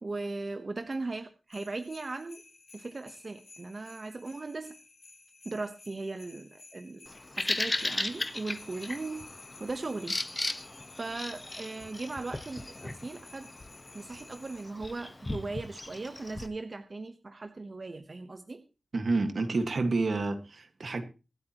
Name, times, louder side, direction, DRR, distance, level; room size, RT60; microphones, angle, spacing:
voice 1, 0.0-2.4 2.7-4.7 5.4-7.0 7.4-9.2 9.6-10.2 10.9-13.5 13.9-18.6, right 3 dB, 50° right, 8 dB, 1.0 m, -38 dB
sound 1, 1.5-14.6, left 3 dB, 70° left, 4.9 m, -54 dB
Bird vocalization bird call bird song, 7.1-16.5, left 2 dB, 30° left, 1.1 m, -37 dB
voice 2, 18.9-21.0, right 3 dB, 70° right, 8 dB, 1.7 m, -29 dB
24.5 x 8.3 x 3.0 m, 0.32 s
wide cardioid pair, 75°, 0 cm